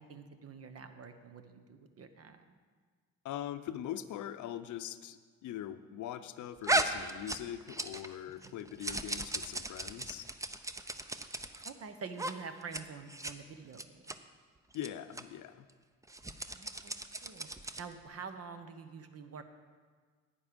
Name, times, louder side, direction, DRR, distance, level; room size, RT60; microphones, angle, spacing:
voice 1, 0.0-2.5 8.4-8.6 11.6-13.9 16.5-16.9 17.2-17.5 17.8-19.4, right 5 dB, 50° right, 8 dB, 1.0 m, -47 dB
voice 2, 3.2-10.3 14.7-15.7, left 11 dB, 75° left, 11 dB, 0.6 m, -42 dB
sound 1, 6.6-8.2 8.4-11.7 12.1-12.3 12.6-12.8 13.1-13.3 13.7-14.2 14.7-14.9 15.1-15.2 16.0-17.9, right 2 dB, 10° right, 0.5 m, -36 dB
11.5 x 9.0 x 5.2 m, 1.5 s
cardioid pair, 90°, 30 cm